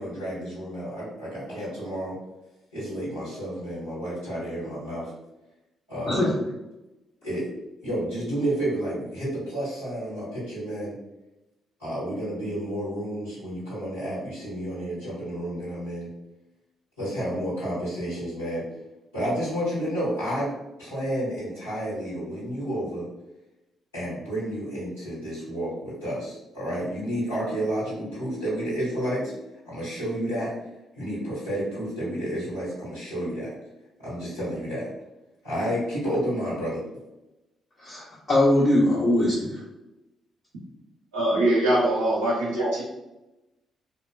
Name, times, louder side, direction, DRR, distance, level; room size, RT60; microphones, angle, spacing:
voice 1, 0.0-2.2 2.7-5.1 5.9-6.3 7.2-7.5 7.8-10.9 11.8-16.1 17.0-18.6 19.1-20.5 20.8-23.1 23.9-29.3 29.6-30.5 31.0-33.5 34.0-34.9 35.4-36.8, equal, 90° left, -13 dB, 1.3 m, -30 dB
voice 2, 37.8-39.6, left 1 dB, 40° left, -11 dB, 1.1 m, -21 dB
voice 3, 41.1-42.8, right 1 dB, 80° right, -8 dB, 0.5 m, -22 dB
2.7 x 2.2 x 2.3 m, 0.98 s
hypercardioid pair, 40°, 0 cm